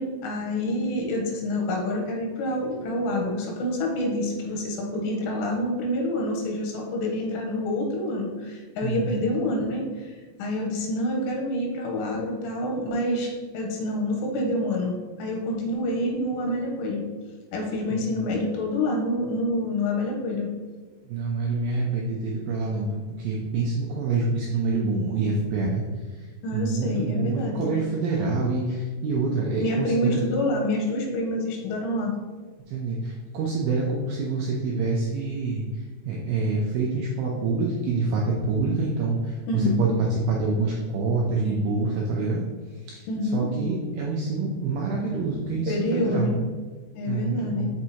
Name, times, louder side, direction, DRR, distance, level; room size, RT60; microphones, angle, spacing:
voice 1, 0.0-17.0 17.5-20.5 26.4-27.7 29.6-32.1 39.5-39.8 43.1-43.5 45.7-46.4 46.9-47.7, left 1 dB, 90° left, 0 dB, 3.0 m, -27 dB
voice 2, 8.8-9.3 17.9-18.1 21.1-25.8 26.5-30.2 32.7-35.6 36.1-42.5 42.9-43.0 43.3-46.3 47.1-47.7, right 3 dB, 85° right, -2 dB, 2.1 m, -26 dB
6.1 x 5.9 x 2.8 m, 1.4 s
omnidirectional pair, 5.0 m